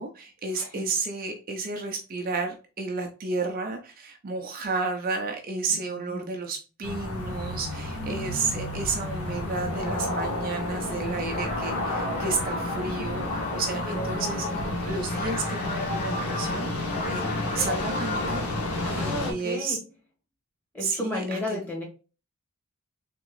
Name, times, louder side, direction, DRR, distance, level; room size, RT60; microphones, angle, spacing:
voice 1, 0.0-17.3 17.5-18.5 18.9-19.8 20.8-21.6, right 4 dB, 40° right, 0.5 m, -32 dB
voice 2, 0.5-0.9 5.5-6.3 17.1-17.4 18.8-19.8 20.7-21.8, left 1 dB, 5° left, 1.2 m, -34 dB
sound 1, 6.8-19.3, left 2 dB, 70° left, 0.9 m, -31 dB
sound 2, 11.2-18.6, left 2 dB, 40° left, 0.8 m, -35 dB
3.6 x 2.9 x 3.0 m
head